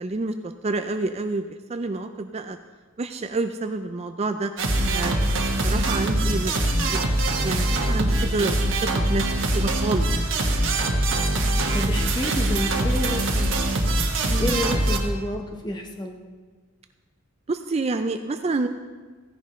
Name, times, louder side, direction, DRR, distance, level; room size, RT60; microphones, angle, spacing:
voice 1, 0.0-2.6 3.0-4.5 4.9-5.2 5.6-7.1 7.4-8.7 9.1-9.2 9.5-10.1 14.3-14.5 17.5-18.7, right 3 dB, 30° right, 7 dB, 0.4 m, -28 dB
sound 1, 4.6-15.0, right 1 dB, 60° right, 1.3 m, -23 dB
voice 2, 11.3-13.5 14.4-16.2, left 1 dB, 20° left, 3 dB, 1.0 m, -30 dB
16.0 x 10.5 x 3.1 m, 1.4 s
head